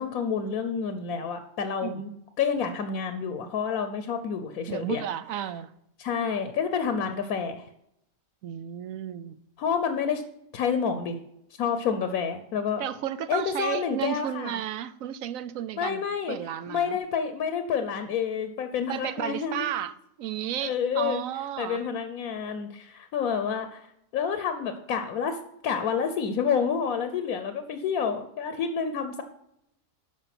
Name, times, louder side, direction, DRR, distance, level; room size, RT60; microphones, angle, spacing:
voice 1, 0.0-2.1 2.4-5.0 6.0-7.6 9.6-10.2 10.5-11.2 11.6-12.8 13.3-14.6 15.8-16.4 16.7-19.7 20.6-21.2 21.6-25.4 25.6-29.2, left 6 dB, 90° left, 1.3 m, -29 dB
voice 2, 4.7-5.7 8.4-9.4 12.8-16.0 16.3-17.0 18.9-21.8, right 10 dB, 75° right, 1.1 m, -33 dB
12.5 x 5.1 x 5.9 m
omnidirectional pair, 1.5 m